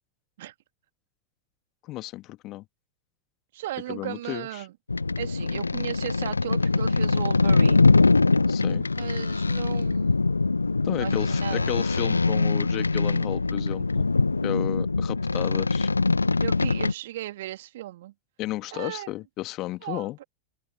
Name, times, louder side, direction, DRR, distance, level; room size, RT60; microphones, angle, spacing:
voice 1, 1.8-2.6 3.9-4.7 8.5-8.9 10.8-14.1 14.4-15.9 18.4-20.2, left 17 dB, 35° left, 1.9 m, -33 dB
voice 2, 3.5-4.7 5.2-7.8 9.0-10.2 10.9-11.7 16.4-18.1 18.7-19.1 19.8-20.1, right 15 dB, 55° right, 2.4 m, -36 dB
sound 1, 4.9-16.9, left 3 dB, 80° left, 0.9 m, -23 dB
figure-of-eight pair, 90°, 0 cm